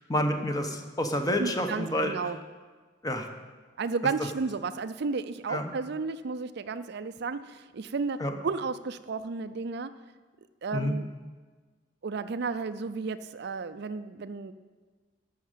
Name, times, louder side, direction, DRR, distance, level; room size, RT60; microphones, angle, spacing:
voice 1, 0.1-2.1 3.0-3.3 5.5-5.7 8.2-8.3 10.7-10.9, equal, 20° left, 5 dB, 1.0 m, -28 dB
voice 2, 1.4-2.4 3.8-8.2 8.4-9.9 10.6-11.1 12.0-14.5, right 4 dB, 60° right, 12 dB, 0.5 m, -33 dB
11.5 x 6.4 x 7.4 m, 1.4 s
head